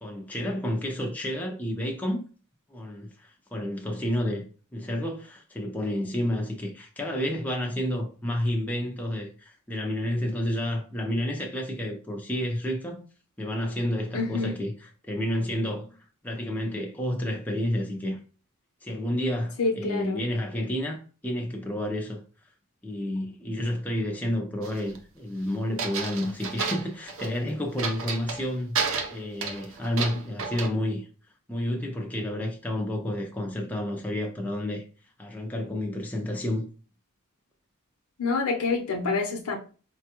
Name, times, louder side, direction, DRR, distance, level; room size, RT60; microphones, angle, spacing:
voice 1, 0.0-2.3 2.7-4.4 4.7-13.0 13.4-14.7 15.1-16.0 16.2-18.2 18.8-22.2 22.8-31.1 31.5-34.8 35.2-36.7, left 1 dB, 5° left, 0.5 m, -30 dB
voice 2, 14.1-14.6 19.6-20.2 38.2-39.6, left 3 dB, 75° left, 0.8 m, -27 dB
sound 1, 24.6-25.0 25.8-27.4 27.8-28.5 28.7-30.7, right 5 dB, 60° right, 0.6 m, -31 dB
4.2 x 2.3 x 2.9 m
head